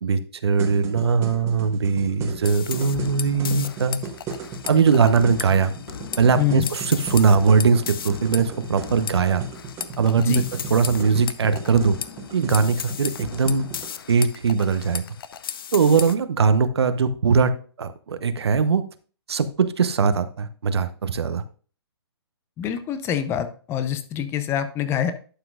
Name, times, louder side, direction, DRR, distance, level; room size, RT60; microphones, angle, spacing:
voice 1, 0.0-4.0 4.7-5.7 6.2-9.4 10.0-12.0 12.3-13.7 14.1-15.0 15.7-17.5 17.8-18.8 19.3-21.4, right 5 dB, 70° right, 11 dB, 0.9 m, -20 dB
sound 1, 0.5-13.9, right 3 dB, 20° right, 1.5 m, -36 dB
sound 2, 2.4-16.2, left 8 dB, 55° left, 0.7 m, -35 dB
voice 2, 22.6-25.1, left 10 dB, 20° left, 11 dB, 0.6 m, -25 dB
11.5 x 6.0 x 2.4 m, 0.39 s
hypercardioid pair, 135°, 14 cm